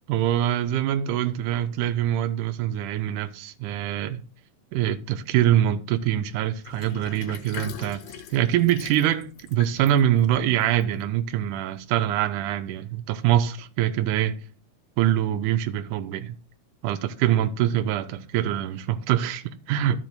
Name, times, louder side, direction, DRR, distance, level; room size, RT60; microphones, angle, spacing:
voice 1, 0.1-4.2 4.7-8.0 8.3-14.4 15.0-16.4 16.8-20.1, right 11 dB, 80° right, 2.1 m, -24 dB
Sink (filling or washing), 6.6-11.4, left 7 dB, 85° left, 2.5 m, -42 dB
14.0 x 5.2 x 2.6 m
omnidirectional pair, 3.8 m